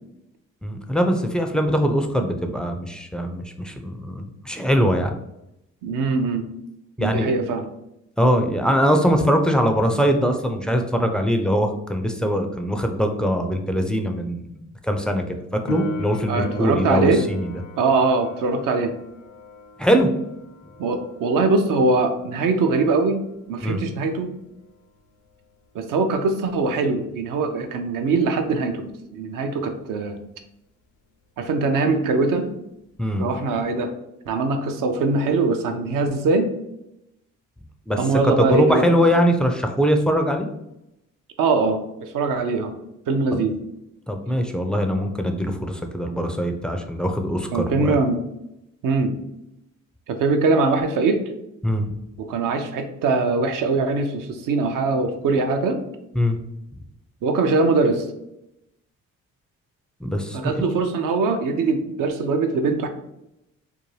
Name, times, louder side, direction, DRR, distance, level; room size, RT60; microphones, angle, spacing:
voice 1, 0.6-5.1 7.0-7.3 8.2-17.5 19.8-20.1 23.6-23.8 33.0-33.3 37.9-38.0 38.2-40.5 44.1-48.0 51.6-51.9 56.2-56.4 60.0-60.6, equal, ahead, 5 dB, 0.3 m, -22 dB
voice 2, 5.8-6.4 7.0-7.7 16.3-17.2 17.8-18.9 20.8-23.2 23.5-24.3 25.7-30.2 31.4-32.5 33.2-33.9 34.3-36.5 38.0-38.9 41.4-42.7 43.1-43.6 47.5-48.2 48.8-49.2 50.1-51.4 52.2-55.8 57.2-58.1 60.3-62.9, right 3 dB, 60° right, 6 dB, 0.5 m, -22 dB
Piano, 15.7-26.1 33.6-33.7, equal, 75° left, 0.5 m, -38 dB
2.6 x 2.2 x 3.1 m, 0.86 s
hypercardioid pair, 50°, 36 cm